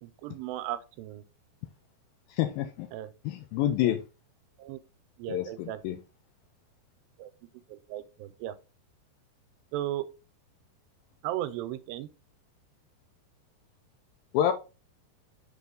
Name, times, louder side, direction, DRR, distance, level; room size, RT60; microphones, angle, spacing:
voice 1, 0.0-1.2 2.9-3.1 3.8-4.0 4.6-4.8 5.2-6.0 7.2-7.3 7.7-8.5 9.7-10.1 11.2-12.1, right 13 dB, 85° right, 2.7 m, -36 dB
voice 2, 2.4-2.9 3.3-4.0 5.3-6.0 14.3-14.5, left 11 dB, 85° left, 2.1 m, -27 dB
7.1 x 4.2 x 3.9 m
omnidirectional pair, 4.9 m